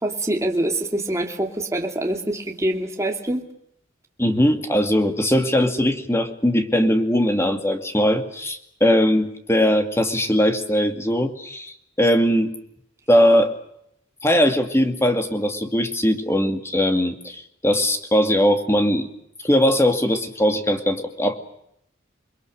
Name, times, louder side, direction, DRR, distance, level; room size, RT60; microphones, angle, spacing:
voice 1, 0.0-3.4, right 1 dB, 15° right, 2 dB, 2.6 m, -25 dB
voice 2, 4.2-12.5 13.1-13.5 14.2-19.1 19.4-21.4, equal, 15° left, 6 dB, 2.4 m, -20 dB
29.0 x 22.5 x 6.5 m, 0.76 s
head